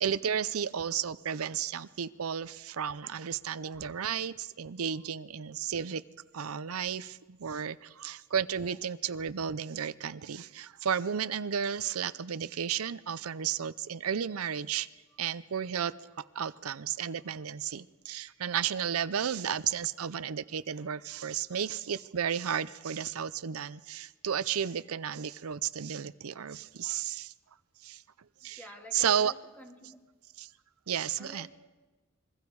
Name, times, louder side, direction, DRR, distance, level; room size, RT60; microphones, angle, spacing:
voice 1, 0.0-6.0 6.3-14.9 15.2-15.9 16.3-27.3 27.8-28.0 28.4-28.6 28.9-29.3 30.4-30.5 30.9-31.5, right 8 dB, 85° right, 15 dB, 0.6 m, -33 dB
voice 2, 28.6-30.0 31.2-31.5, equal, 10° left, 1 dB, 2.9 m, -50 dB
26.0 x 22.5 x 4.7 m, 1.2 s
head